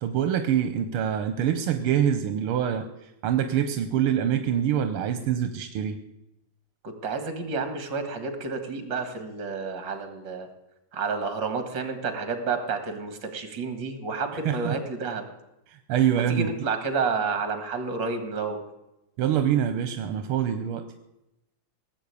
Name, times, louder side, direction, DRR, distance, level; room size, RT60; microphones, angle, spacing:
voice 1, 0.0-6.0 14.5-14.8 15.7-16.5 19.2-20.9, right 9 dB, 85° right, 8 dB, 1.7 m, -25 dB
voice 2, 6.8-10.5 10.9-15.2 16.1-18.6, right 4 dB, 55° right, 7 dB, 2.6 m, -30 dB
18.0 x 7.9 x 8.4 m, 0.89 s
omnidirectional pair, 2.4 m